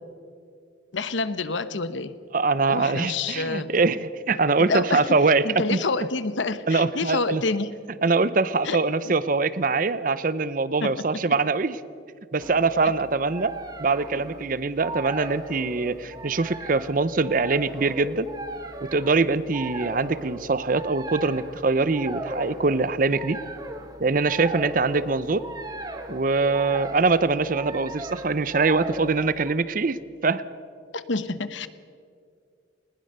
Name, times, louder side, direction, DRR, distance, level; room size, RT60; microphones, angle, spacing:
voice 1, 0.9-2.2 2.7-3.7 4.6-5.1 5.4-7.7 8.6-9.1 10.8-11.1 30.9-31.7, left 3 dB, 80° left, 14 dB, 0.9 m, -28 dB
voice 2, 2.3-5.8 6.7-7.4 8.0-11.8 12.3-13.5 13.8-18.3 18.8-23.4 24.0-25.4 26.1-30.0 30.2-30.4, right 3 dB, 45° right, 16 dB, 0.6 m, -23 dB
sound 1, 12.4-29.5, right 1 dB, 20° right, 1.3 m, -38 dB
20.0 x 19.5 x 6.7 m, 2.3 s
head